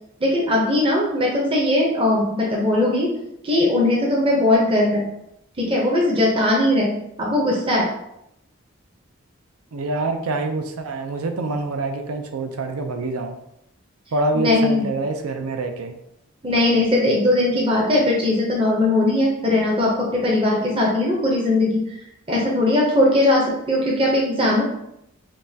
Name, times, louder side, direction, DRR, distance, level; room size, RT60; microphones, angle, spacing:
voice 1, 0.2-3.1 3.4-5.1 5.6-7.9 14.3-14.9 16.4-22.0 22.3-24.6, left 1 dB, 25° right, -3 dB, 0.6 m, -19 dB
voice 2, 9.7-13.4 14.1-15.9, right 2 dB, 90° right, 6 dB, 0.5 m, -26 dB
5.2 x 2.2 x 2.7 m, 0.80 s
head